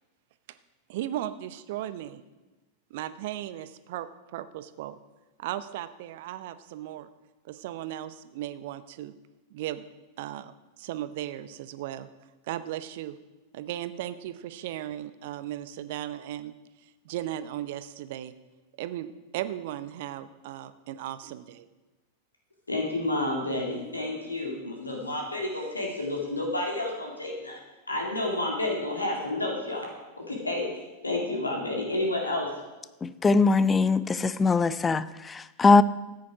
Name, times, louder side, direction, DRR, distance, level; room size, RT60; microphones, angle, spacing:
voice 1, 0.9-2.2 2.9-5.0 5.4-7.1 7.4-9.1 9.5-9.8 10.2-12.1 12.5-13.2 13.5-16.5 17.0-18.3 18.8-21.7, right 12 dB, 50° right, 13 dB, 0.7 m, -36 dB
voice 2, 22.7-27.6 27.9-32.6, left 2 dB, 80° left, 0 dB, 2.3 m, -30 dB
voice 3, 33.0-35.8, left 4 dB, 15° left, 16 dB, 0.5 m, -21 dB
14.5 x 9.6 x 4.8 m, 1.1 s
figure-of-eight pair, 90°, 0 cm